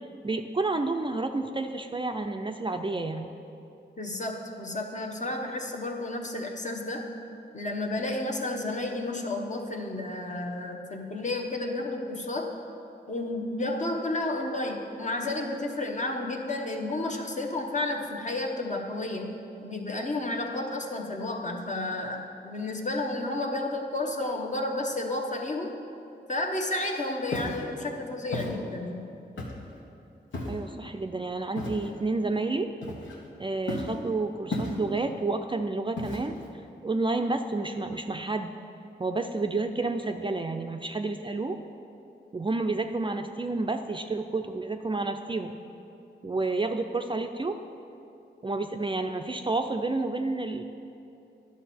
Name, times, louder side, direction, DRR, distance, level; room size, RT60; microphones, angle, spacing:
voice 1, 0.2-3.4 30.5-32.7 33.4-36.4 36.8-38.5 39.0-41.6 42.3-45.6 46.2-47.6 48.4-50.6, right 3 dB, 25° right, 6 dB, 0.4 m, -30 dB
voice 2, 4.0-7.1 7.5-12.5 13.1-25.7 26.3-29.1, left 2 dB, 40° left, 2 dB, 1.0 m, -32 dB
Walk footsteps, 27.3-27.6 28.3-28.6 29.4-29.7 30.3-30.7 31.6-31.9 32.8-33.3 33.7-34.0 34.5-35.0 36.0-36.5, left 1 dB, 90° left, 1.2 m, -33 dB
11.0 x 6.1 x 4.3 m, 2.7 s
cardioid pair, 60°, 19 cm